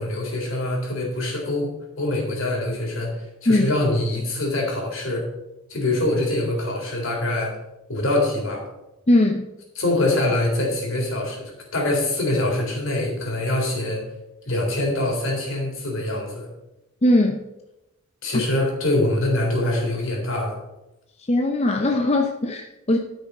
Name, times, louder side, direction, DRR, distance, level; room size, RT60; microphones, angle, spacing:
voice 1, 0.0-5.3 5.7-7.5 7.9-8.6 9.8-14.0 14.5-16.5 18.2-20.6, left 1 dB, 60° left, -1 dB, 4.0 m, -24 dB
voice 2, 9.1-9.4 17.0-17.4 21.3-23.0, left 1 dB, 30° left, 4 dB, 0.7 m, -19 dB
13.0 x 6.1 x 5.4 m, 0.94 s
head